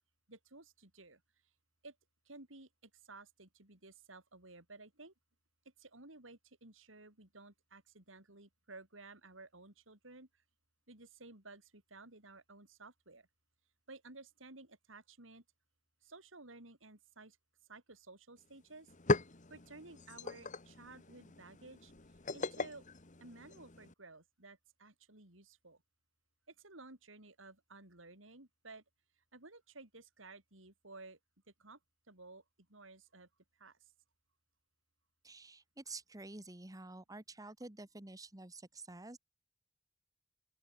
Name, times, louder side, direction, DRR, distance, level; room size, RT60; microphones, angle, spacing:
voice 1, 0.3-1.2 1.8-2.0 2.3-5.1 5.8-10.3 10.9-13.3 13.9-15.4 16.0-17.4 17.7-18.9 19.5-21.9 22.3-22.9 23.2-25.8 26.5-28.8 29.3-31.2 31.6-31.8 32.1-32.4 32.7-33.3 33.6-33.9, right 3 dB, 90° right, 5.0 m, -55 dB
sound 1, 18.4-18.5 18.7-23.9, left 3 dB, 40° left, 1.7 m, -39 dB
voice 2, 35.2-39.2, right 2 dB, 20° right, 1.4 m, -49 dB
open air
head